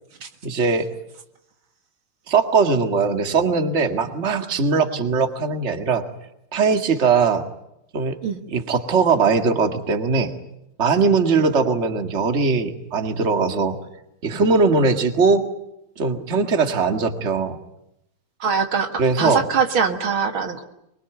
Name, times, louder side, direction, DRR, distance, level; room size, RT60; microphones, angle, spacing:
voice 1, 0.4-0.9 2.3-6.0 6.5-7.5 7.9-8.2 8.5-10.3 10.8-13.8 14.2-15.4 16.0-17.6 19.0-19.4, right 4 dB, 35° right, 7 dB, 2.1 m, -20 dB
voice 2, 18.4-20.6, right 6 dB, 65° right, 7 dB, 2.4 m, -22 dB
24.0 x 23.0 x 9.1 m, 0.84 s
omnidirectional pair, 2.4 m